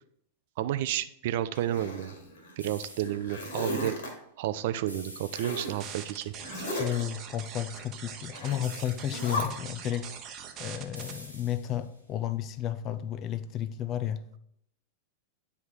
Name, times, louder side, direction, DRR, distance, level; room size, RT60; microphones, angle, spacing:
voice 1, 0.6-2.1 2.6-3.9 4.4-6.3, right 12 dB, 50° right, 13 dB, 0.4 m, -31 dB
Zipper (clothing), 1.5-2.5 3.0-4.1 5.3-5.8 6.4-7.0 8.3-8.6 9.0-9.4, left 1 dB, 60° left, 1.9 m, -35 dB
sound 1, 2.6-3.4 4.9-6.3 8.6-9.4 11.0-12.0, equal, 85° left, 1.5 m, -48 dB
sound 2, 5.8-11.1, right 8 dB, 35° right, 0.9 m, -43 dB
voice 2, 6.5-10.1 10.6-14.2, left 11 dB, 35° left, 13 dB, 0.5 m, -32 dB
9.3 x 3.4 x 4.6 m, 0.73 s
figure-of-eight pair, 90°, 0 cm